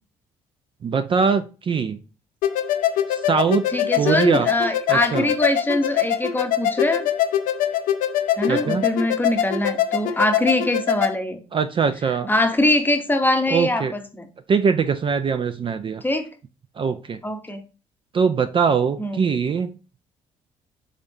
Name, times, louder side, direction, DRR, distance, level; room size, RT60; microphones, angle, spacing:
voice 1, 0.8-2.0 3.1-3.6 3.9-4.5 4.9-5.3 8.5-8.8 11.5-12.3 13.5-13.9 14.5-16.0 16.8-17.2 18.1-19.8, right 6 dB, 40° right, 10 dB, 0.4 m, -22 dB
sound 1, 2.4-11.1, left 10 dB, 75° left, 0.4 m, -23 dB
voice 2, 3.7-7.1 8.4-11.4 12.3-14.3 16.0-16.3 17.2-17.6 19.0-19.2, left 1 dB, 15° left, 6 dB, 0.7 m, -22 dB
3.7 x 3.3 x 2.6 m, 0.32 s
supercardioid pair, 65°, 14 cm